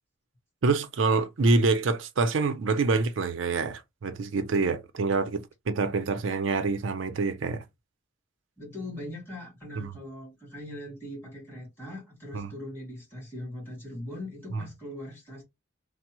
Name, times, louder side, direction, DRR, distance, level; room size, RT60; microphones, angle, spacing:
voice 1, 0.6-7.6 9.8-9.9 12.3-12.5 14.5-14.6, right 3 dB, 75° right, 0.5 m, -26 dB
voice 2, 8.6-15.4, left 1 dB, 10° left, 2.1 m, -40 dB
3.4 x 2.0 x 2.9 m
head